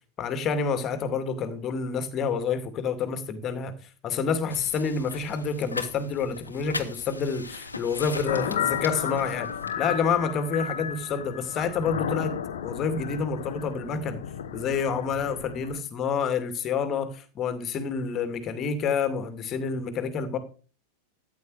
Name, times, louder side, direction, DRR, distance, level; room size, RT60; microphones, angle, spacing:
voice 1, 0.2-3.7 4.0-9.5 9.8-12.4 12.6-14.2 14.5-20.4, left 5 dB, 30° left, 2.4 m, -28 dB
sound 1, 4.5-9.7, left 3 dB, 80° left, 1.5 m, -39 dB
sound 2, 8.2-15.8, left 8 dB, 60° left, 1.1 m, -33 dB
14.0 x 9.1 x 4.9 m
figure-of-eight pair, 90°, 0 cm